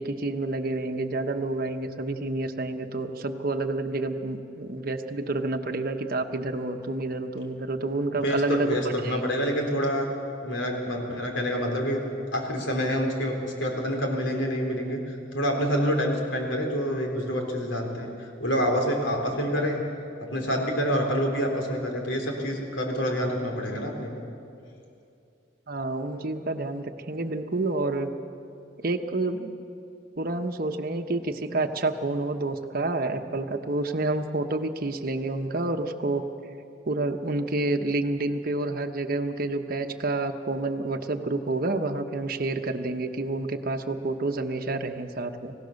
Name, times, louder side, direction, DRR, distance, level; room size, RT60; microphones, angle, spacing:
voice 1, 0.0-9.3 25.7-28.1 28.8-29.5 30.2-36.3 36.8-45.5, right 2 dB, 50° right, 6 dB, 1.1 m, -29 dB
voice 2, 8.2-10.1 10.4-12.0 12.3-15.0 15.3-18.1 18.4-19.8 20.2-24.3, equal, 80° left, 2 dB, 3.6 m, -27 dB
25.0 x 17.0 x 6.5 m, 2.5 s
head